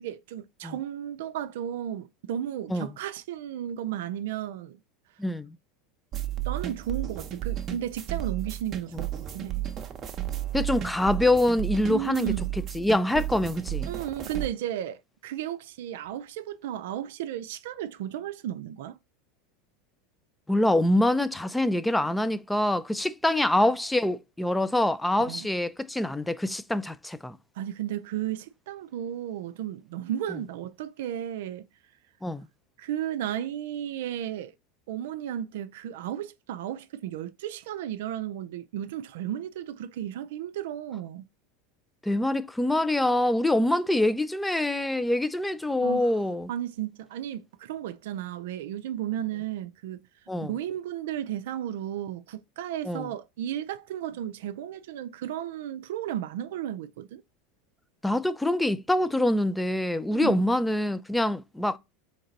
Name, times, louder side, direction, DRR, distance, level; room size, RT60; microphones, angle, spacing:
voice 1, 0.0-4.8 6.4-9.7 11.9-12.5 13.9-19.0 25.2-25.5 27.6-31.7 32.8-34.5 34.9-41.3 45.8-46.1 46.5-50.1 50.5-57.2 60.1-60.5, right 11 dB, 75° right, 0.4 m, -34 dB
voice 2, 5.2-5.6 10.5-12.3 12.7-13.9 20.5-27.4 32.2-32.5 42.0-46.5 50.3-50.5 52.8-53.1 58.0-61.8, left 1 dB, 5° left, 0.4 m, -25 dB
sound 1, 6.1-14.5, right 12 dB, 35° right, 0.8 m, -33 dB
3.8 x 3.3 x 4.0 m
hypercardioid pair, 95°, 0 cm